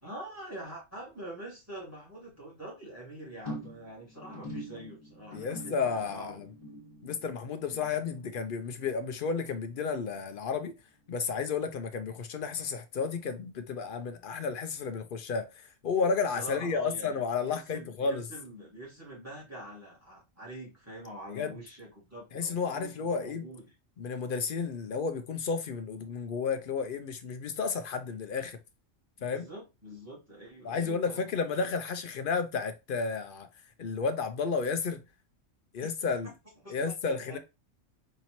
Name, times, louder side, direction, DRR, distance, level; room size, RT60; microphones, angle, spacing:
voice 1, 0.0-6.5 16.4-23.6 29.2-31.2 35.8-35.9 36.6-36.8 37.1-37.4, right 1 dB, 10° right, 1.9 m, -45 dB
sound 1, 3.5-10.0 10.3-10.7 11.1-11.2, equal, 30° left, 1.2 m, -46 dB
voice 2, 5.3-6.5 7.0-10.7 11.1-18.2 21.3-21.5 22.3-23.4 24.0-28.6 29.2-29.5 30.6-33.5 33.8-35.0 35.7-36.3 36.7-37.4, left 5 dB, 60° left, 0.5 m, -32 dB
4.2 x 2.8 x 2.9 m
omnidirectional pair, 1.4 m